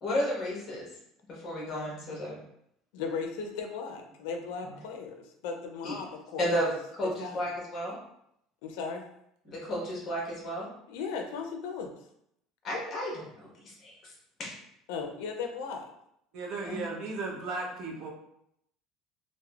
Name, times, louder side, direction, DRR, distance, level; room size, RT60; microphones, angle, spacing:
voice 1, 0.0-0.8 1.3-2.4 5.8-5.9 6.4-6.7 7.0-7.9 9.5-10.7 12.6-13.5 13.8-14.1 14.4-14.5 16.6-16.8, equal, 30° left, -4 dB, 1.0 m, -32 dB
voice 2, 2.9-6.7 7.0-7.5 8.6-9.1 10.9-11.9 14.9-15.9, left 5 dB, 85° left, 4 dB, 0.4 m, -37 dB
voice 3, 16.3-18.1, right 3 dB, 60° right, 0 dB, 0.6 m, -36 dB
3.2 x 2.0 x 2.3 m, 0.75 s
cardioid pair, 150°, 0 cm